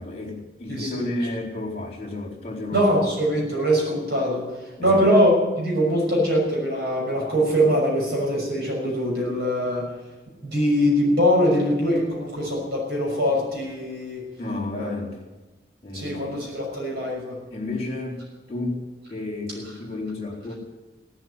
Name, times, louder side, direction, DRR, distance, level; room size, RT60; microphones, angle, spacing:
voice 1, 0.0-2.9 4.8-5.0 14.4-15.2 15.8-16.4 17.5-18.2 18.5-20.5, left 2 dB, 35° left, 0 dB, 3.8 m, -31 dB
voice 2, 0.7-1.1 2.7-5.3 5.6-9.9 10.4-14.2 14.7-14.9 15.9-17.4, equal, 65° right, -2 dB, 6.1 m, -22 dB
17.5 x 8.0 x 9.7 m, 1.1 s
head